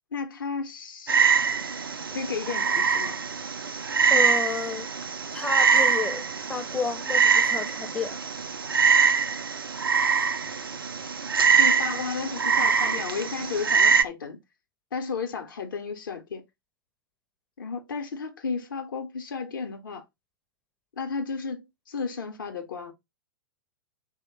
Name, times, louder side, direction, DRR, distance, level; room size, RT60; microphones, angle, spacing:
voice 1, 0.1-1.2 2.1-3.2 11.5-14.4 14.9-16.4 17.6-20.0 21.0-22.9, left 5 dB, 65° left, 0.6 m, -33 dB
Frog, 1.1-14.0, right 5 dB, 75° right, 0.4 m, -23 dB
voice 2, 4.1-4.9 5.3-6.2 6.5-8.2, left 4 dB, 5° left, 0.4 m, -31 dB
3.0 x 2.0 x 4.0 m
figure-of-eight pair, 100°, 12 cm